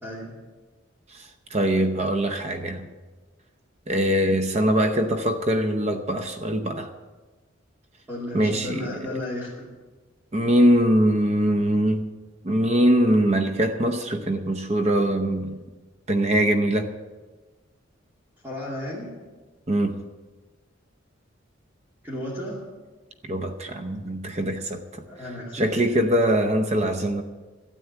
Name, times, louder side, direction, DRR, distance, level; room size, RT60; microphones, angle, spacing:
voice 1, 0.0-0.3 8.1-9.7 18.4-19.1 22.0-22.6 25.0-26.1, left 1 dB, 10° right, -5 dB, 2.4 m, -34 dB
voice 2, 1.1-2.9 3.9-6.9 8.3-8.9 10.3-12.0 12.4-15.6 16.1-16.9 19.7-20.0 23.2-24.8 25.5-27.2, right 1 dB, 35° right, 7 dB, 0.7 m, -22 dB
13.0 x 8.6 x 7.9 m, 1.3 s
head